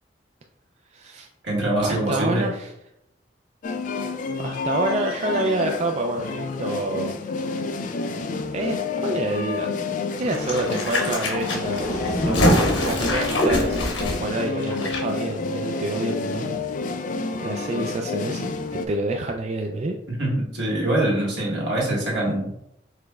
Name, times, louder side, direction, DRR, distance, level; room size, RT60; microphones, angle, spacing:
voice 1, 0.9-1.3 1.8-2.7 4.4-7.2 8.5-8.8 9.0-9.7 10.1-16.5 17.4-18.5 18.9-20.0, right 2 dB, 35° right, 2 dB, 0.3 m, -27 dB
voice 2, 1.4-2.5 20.1-22.5, right 1 dB, 75° right, -4 dB, 1.7 m, -24 dB
sound 1, 3.6-18.9, left 4 dB, 45° left, 0.3 m, -29 dB
sound 2, 10.2-15.0 15.3-15.4, left 1 dB, 85° left, 1.1 m, -24 dB
4.9 x 4.2 x 2.3 m, 0.81 s
head